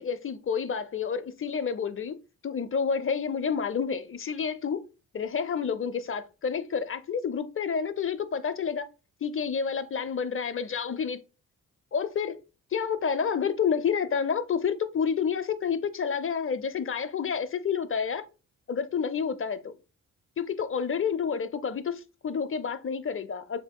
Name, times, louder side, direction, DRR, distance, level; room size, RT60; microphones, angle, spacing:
voice 1, 0.0-2.1 2.4-4.8 5.1-8.9 9.2-11.2 11.9-12.4 12.7-18.2 18.7-19.7 20.4-23.6, left 6 dB, 40° left, 0.6 m, -29 dB
7.1 x 2.8 x 2.2 m
cardioid pair, 60°, 34 cm